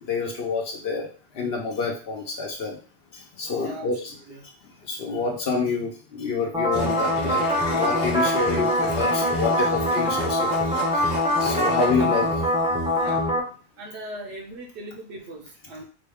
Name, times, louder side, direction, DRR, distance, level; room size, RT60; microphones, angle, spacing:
voice 1, 0.0-1.1 1.3-2.8 3.1-4.1 4.8-7.4 7.7-11.1 11.4-12.3, left 4 dB, 70° left, -1 dB, 1.0 m, -28 dB
voice 2, 3.6-4.0 4.3-4.5 11.4-12.1 13.0-13.3 13.8-15.8, right 1 dB, 80° right, 0 dB, 1.0 m, -39 dB
sound 1, 6.5-13.4, equal, 5° right, 0.5 m, -23 dB
Domestic sounds home sounds, 6.7-13.3, left 2 dB, 45° left, 0.7 m, -34 dB
4.0 x 2.3 x 3.4 m, 0.38 s
omnidirectional pair, 1.1 m